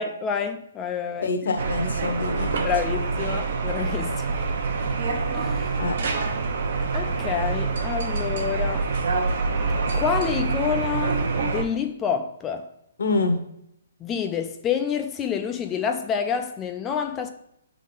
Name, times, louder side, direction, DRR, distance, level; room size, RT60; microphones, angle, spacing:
voice 1, 0.0-1.3 2.6-4.5 5.3-5.7 6.9-8.9 9.9-12.7 14.0-17.3, left 7 dB, 15° left, 0.4 m, -28 dB
voice 2, 1.2-2.6 5.8-6.0 13.0-13.4, left 3 dB, 75° left, 1.1 m, -25 dB
sound 1, 1.6-11.6, right 4 dB, 55° right, 0.9 m, -26 dB
8.3 x 3.7 x 3.9 m
hypercardioid pair, 160°, 0 cm